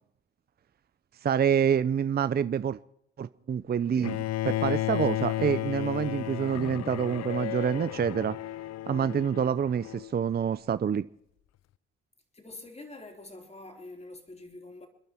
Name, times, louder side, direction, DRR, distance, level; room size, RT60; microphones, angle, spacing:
voice 1, 1.2-2.8 3.2-8.4 8.9-11.1, right 8 dB, 30° right, 0.6 m, -27 dB
Bowed string instrument, 4.0-10.1, left 15 dB, 60° left, 0.5 m, -33 dB
voice 2, 12.3-14.9, left 2 dB, 20° left, 3.8 m, -45 dB
29.0 x 10.5 x 4.4 m
cardioid pair, 90°, 30 cm